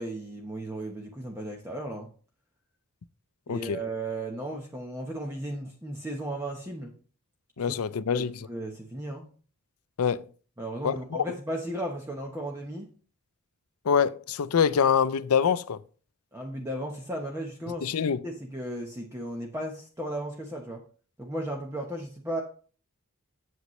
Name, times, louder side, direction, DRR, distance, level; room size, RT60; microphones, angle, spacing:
voice 1, 0.0-2.1 3.5-6.9 7.7-7.8 8.1-9.2 10.6-12.9 16.3-17.9 18.2-20.8 21.2-22.4, right 1 dB, 10° right, 0.9 m, -35 dB
voice 2, 3.5-3.8 7.6-8.3 10.0-10.2 10.8-11.2 13.8-15.8 17.8-18.2, left 7 dB, 80° left, 0.5 m, -25 dB
8.2 x 7.7 x 3.1 m
head